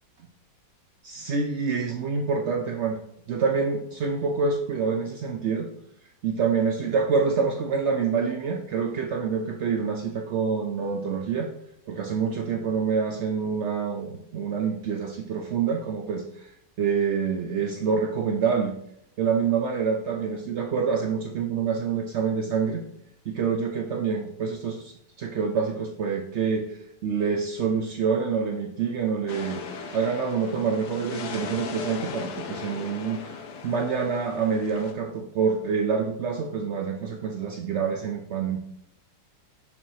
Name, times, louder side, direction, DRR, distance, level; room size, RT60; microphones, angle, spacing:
voice 1, 1.0-3.0 3.3-5.7 6.2-11.5 11.9-16.5 16.8-18.7 19.2-22.8 23.3-38.6, right 5 dB, 80° right, 2 dB, 0.6 m, -27 dB
sound 1, 29.3-34.9, left 5 dB, 70° left, 1.3 m, -38 dB
7.1 x 6.3 x 2.8 m, 0.76 s
omnidirectional pair, 1.9 m